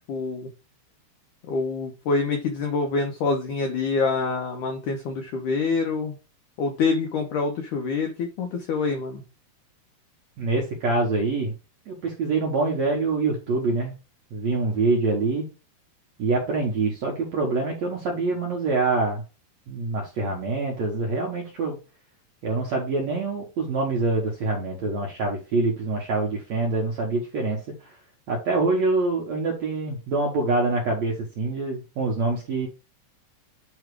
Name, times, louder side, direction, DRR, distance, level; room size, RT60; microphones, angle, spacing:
voice 1, 0.1-0.5 1.5-6.1 6.6-9.2, left 4 dB, 80° left, 3 dB, 1.8 m, -26 dB
voice 2, 10.4-11.5 11.9-13.9 14.3-15.5 16.2-19.2 19.7-21.8 22.4-27.9 28.3-32.7, right 3 dB, 65° right, 0 dB, 1.8 m, -25 dB
8.7 x 3.1 x 4.7 m, 0.31 s
omnidirectional pair, 4.8 m